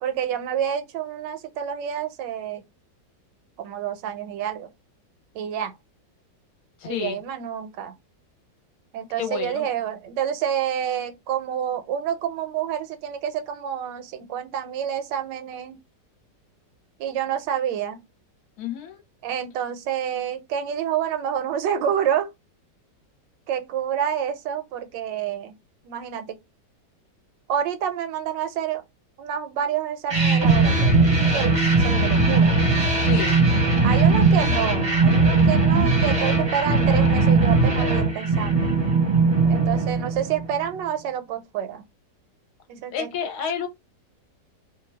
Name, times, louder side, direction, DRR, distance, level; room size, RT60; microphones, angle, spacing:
voice 1, 0.0-2.6 3.6-4.7 5.3-5.7 6.8-7.9 8.9-15.8 17.0-18.0 19.2-22.3 23.5-25.6 25.8-26.4 27.5-28.8 29.2-32.6 33.8-38.7 39.5-41.8 42.7-43.1, right 9 dB, 85° right, 1.3 m, -28 dB
voice 2, 6.8-7.2 9.1-9.7 18.6-19.0 33.0-33.4 42.9-43.7, left 8 dB, 70° left, 1.1 m, -30 dB
sound 1, 30.1-40.6, right 3 dB, 30° right, 0.6 m, -19 dB
2.8 x 2.2 x 3.2 m
omnidirectional pair, 1.9 m